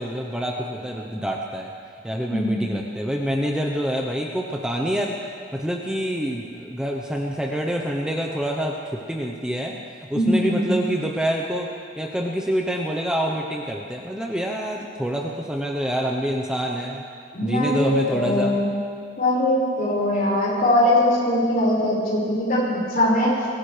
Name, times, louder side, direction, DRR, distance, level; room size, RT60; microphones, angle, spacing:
voice 1, 0.0-1.7 2.0-5.2 5.5-9.8 10.1-11.7 12.0-17.0 17.4-18.6, equal, 5° right, 0 dB, 0.9 m, -26 dB
voice 2, 2.3-2.7 10.1-10.7 17.3-18.7 19.2-23.3, left 1 dB, 50° left, -6 dB, 5.4 m, -21 dB
24.0 x 16.5 x 3.4 m, 2.2 s
head